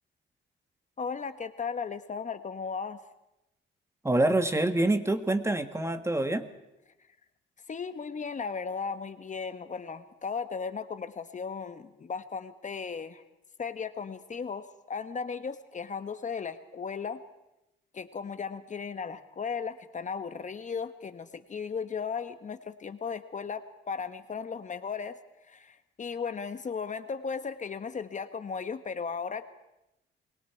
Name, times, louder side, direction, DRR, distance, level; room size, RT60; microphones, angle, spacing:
voice 1, 1.0-3.1 7.7-13.2 13.6-17.2 17.9-25.2 25.5-29.5, left 5 dB, 40° left, 10 dB, 1.3 m, -36 dB
voice 2, 4.0-6.5, right 1 dB, 15° right, 9 dB, 1.6 m, -26 dB
28.5 x 22.0 x 4.6 m, 0.91 s
cardioid pair, 90°, 20 cm